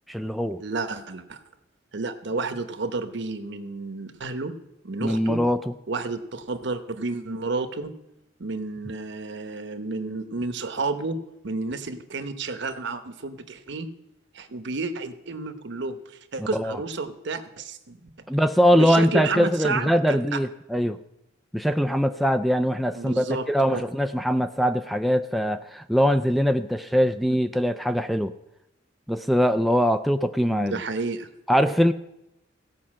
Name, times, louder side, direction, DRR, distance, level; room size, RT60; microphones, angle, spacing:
voice 1, 0.1-0.6 5.0-5.7 16.4-16.8 18.3-21.0 21.5-28.4 29.1-30.8 31.5-31.9, equal, ahead, 7 dB, 0.3 m, -22 dB
voice 2, 0.6-1.4 1.9-4.5 4.8-5.4 5.9-7.9 8.4-11.2 11.4-13.9 14.3-18.0 18.7-20.4 22.9-23.8 30.4-31.3, right 3 dB, 65° right, 9 dB, 0.9 m, -31 dB
16.0 x 5.6 x 7.4 m, 0.87 s
head